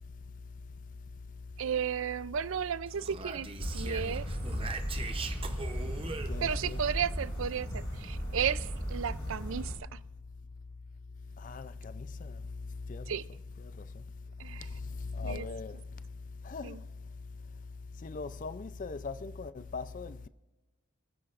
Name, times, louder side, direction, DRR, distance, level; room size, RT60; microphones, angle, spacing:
voice 1, 1.6-3.5 3.7-4.3 6.4-10.0 13.1-13.3 14.4-14.7 15.2-15.5 16.6-16.8, right 8 dB, 65° right, 0.4 m, -34 dB
Speech, 2.9-6.8, right 4 dB, 25° right, 0.7 m, -41 dB
sound 1, 3.6-9.8, equal, 80° left, 4.7 m, -36 dB
voice 2, 6.3-6.8 11.4-12.4 12.9-13.2 13.6-14.0 14.6-15.8 16.4-16.8 18.0-20.3, left 4 dB, 35° left, 0.4 m, -40 dB
29.0 x 9.9 x 2.5 m
head